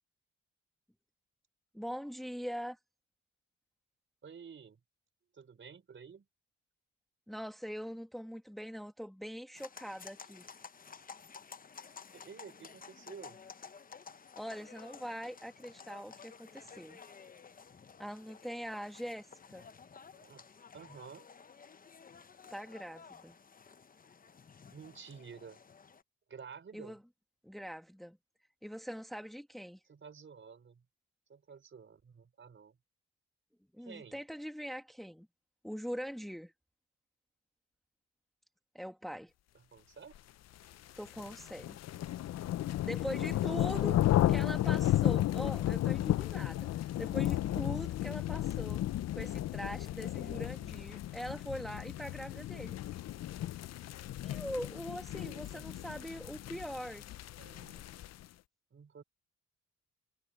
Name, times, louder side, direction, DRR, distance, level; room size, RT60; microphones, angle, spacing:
voice 1, 1.7-2.8 7.3-10.5 14.4-17.0 18.0-19.3 19.5-19.6 22.5-23.4 26.7-27.0 27.4-28.2 28.6-29.8 33.7-35.3 35.6-36.5 38.7-39.3 41.0-41.8 42.6-44.0 44.3-48.8 49.1-52.8 54.2-57.1, equal, ahead, 1.9 m, -42 dB
voice 2, 4.2-4.8 5.3-6.3 12.1-13.4 20.1-20.5 20.7-21.3 24.7-25.6 26.3-27.0 29.8-30.8 31.3-32.8 33.8-34.2 39.7-40.1 43.5-44.0 55.2-55.8 56.5-56.8 57.4-58.0 58.7-59.0, right 6 dB, 40° right, 4.6 m, -52 dB
sound 1, 9.5-26.0, left 5 dB, 30° left, 0.9 m, -53 dB
sound 2, 40.7-58.2, left 13 dB, 60° left, 0.6 m, -33 dB
cardioid pair, 90°, 30 cm